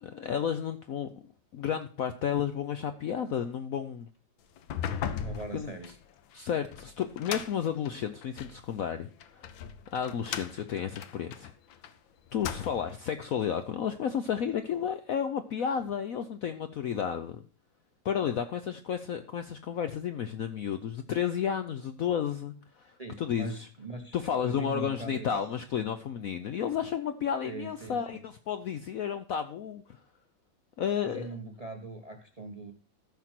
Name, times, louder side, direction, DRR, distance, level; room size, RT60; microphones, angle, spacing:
voice 1, 0.0-4.1 4.9-5.1 5.5-5.7 6.3-9.5 9.9-11.5 12.3-17.4 18.0-23.6 24.1-30.0 30.8-31.3, left 8 dB, 65° left, 9 dB, 0.9 m, -32 dB
sound 1, 4.6-8.6 9.2-11.9 12.3-13.0, left 9 dB, 90° left, 1.6 m, -38 dB
voice 2, 5.2-5.9 23.0-25.4 27.4-28.2 31.0-32.7, right 3 dB, 25° right, 5 dB, 0.8 m, -41 dB
14.0 x 5.9 x 4.4 m, 0.40 s
omnidirectional pair, 2.1 m